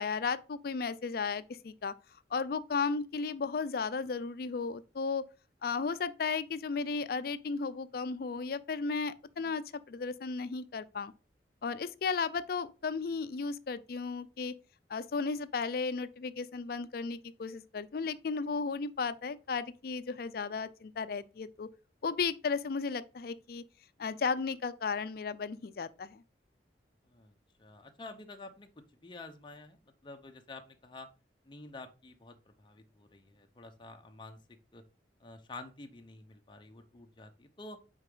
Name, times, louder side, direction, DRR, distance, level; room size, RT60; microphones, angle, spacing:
voice 1, 0.0-1.9 2.3-5.2 5.6-11.1 11.6-14.5 14.9-21.7 22.0-23.6 24.0-26.2, left 5 dB, 55° left, 0.4 m, -34 dB
voice 2, 27.6-28.7 29.0-31.1 31.4-34.4 34.7-34.8 35.2-37.8, left 2 dB, 25° left, 0.7 m, -49 dB
6.4 x 4.6 x 3.8 m
head